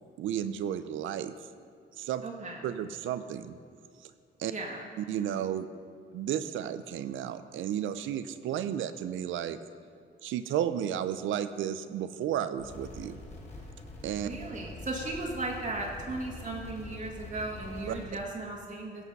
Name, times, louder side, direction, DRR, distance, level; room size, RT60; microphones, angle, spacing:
voice 1, 0.2-1.3 2.0-2.2 2.6-3.6 4.0-4.1 4.4-4.5 5.0-5.7 6.1-9.6 10.2-13.2 14.0-14.3 17.9-18.0, right 10 dB, 80° right, 12 dB, 0.6 m, -33 dB
voice 2, 2.2-2.6 4.5-4.8 14.2-19.0, right 2 dB, 40° right, -2 dB, 1.9 m, -36 dB
sound 1, 12.6-18.1, left 2 dB, 35° left, 3.4 m, -45 dB
16.5 x 5.9 x 5.4 m, 2.2 s
cardioid pair, 90°, 20 cm